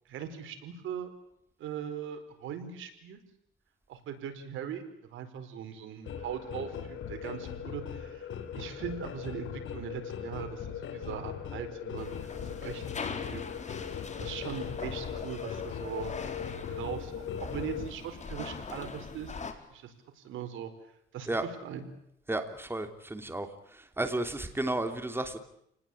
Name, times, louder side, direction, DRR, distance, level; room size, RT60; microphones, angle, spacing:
voice 1, 0.0-1.1 1.6-3.2 3.9-4.8 5.1-8.3 8.5-13.4 13.7-16.1 16.7-19.4 19.7-20.7 21.1-21.8, right 8 dB, 80° right, 7 dB, 4.7 m, -40 dB
sound 1, 6.0-17.9, left 8 dB, 75° left, 4.6 m, -39 dB
sound 2, 12.0-19.5, left 4 dB, 35° left, 4.3 m, -41 dB
voice 2, 22.3-23.5 23.7-25.4, right 2 dB, 10° right, 7 dB, 3.1 m, -33 dB
30.0 x 19.5 x 8.6 m, 0.76 s
cardioid pair, 90°, 20 cm